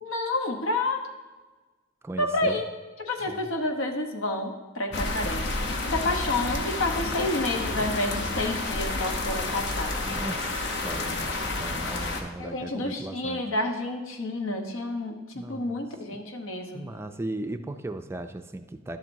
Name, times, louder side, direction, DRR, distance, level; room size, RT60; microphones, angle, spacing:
voice 1, 0.0-1.1 2.2-2.6 3.0-5.4 5.9-9.9 12.4-16.9, left 2 dB, 85° left, 4 dB, 1.0 m, -29 dB
voice 2, 2.0-2.6 3.2-3.5 5.8-6.1 10.0-13.4 15.3-15.9 16.7-19.0, right 2 dB, 15° right, 7 dB, 0.3 m, -37 dB
sound 1, 4.9-12.2, left 2 dB, 60° left, 0.9 m, -30 dB
11.5 x 7.3 x 2.7 m, 1.3 s
head